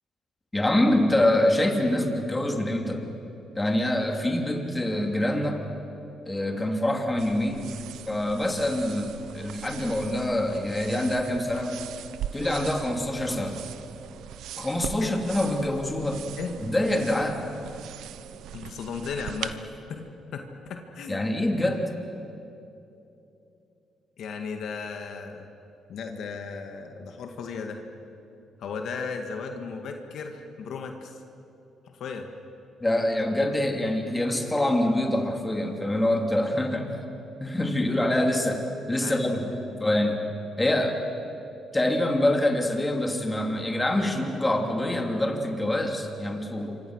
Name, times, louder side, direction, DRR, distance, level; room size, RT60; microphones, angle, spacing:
voice 1, 0.5-3.0 3.5-5.6 6.3-7.7 8.1-11.8 12.3-13.6 14.6-16.2 16.6-17.4 21.1-21.9 32.8-36.9 37.4-38.6 38.9-39.5 39.8-40.3 40.6-40.9 41.7-46.8, left 1 dB, 15° left, 3 dB, 3.1 m, -25 dB
sound 1, 7.2-19.5, right 10 dB, 85° right, 0.8 m, -40 dB
voice 2, 18.5-19.7 20.3-21.2 24.2-25.5 25.9-27.8 28.6-31.2 31.9-32.3 39.0-39.8, left 5 dB, 70° left, 4 dB, 2.0 m, -36 dB
27.5 x 24.5 x 6.5 m, 2.8 s
cardioid pair, 90°, 0 cm